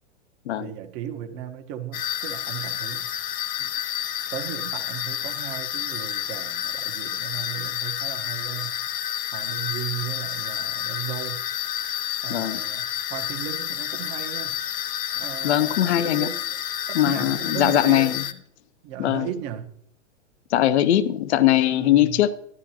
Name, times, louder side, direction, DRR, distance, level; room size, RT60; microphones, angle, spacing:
voice 1, 0.6-3.1 3.6-3.7 4.3-8.8 9.3-11.4 12.2-14.5 15.1-16.4 16.9-18.2 18.8-19.7 21.7-22.2, right 11 dB, 40° right, 1.2 m, -36 dB
sound 1, 1.9-18.3, left 11 dB, 25° left, 0.5 m, -30 dB
voice 2, 12.3-12.6 15.4-16.3 17.0-18.2 19.0-19.3 20.5-22.3, left 12 dB, 65° left, 0.7 m, -20 dB
12.5 x 11.0 x 2.9 m
hypercardioid pair, 120°, 36 cm